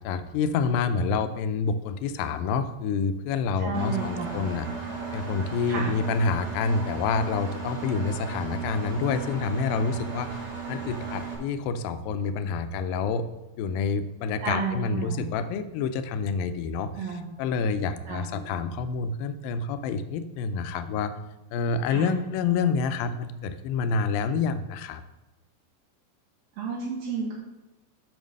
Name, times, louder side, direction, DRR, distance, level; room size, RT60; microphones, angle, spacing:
voice 1, 0.0-4.7 5.1-10.4 10.7-13.2 13.6-16.9 17.4-21.1 21.5-25.0, left 5 dB, 80° left, 10 dB, 2.2 m, -28 dB
voice 2, 3.6-4.4 5.7-5.9 14.4-15.3 16.9-17.3 18.1-18.3 21.9-22.1 26.5-27.5, right 4 dB, 75° right, -2 dB, 2.9 m, -32 dB
Engine, 3.7-11.3, right 5 dB, 50° right, 3.0 m, -35 dB
7.2 x 5.8 x 6.4 m, 1.0 s
omnidirectional pair, 4.3 m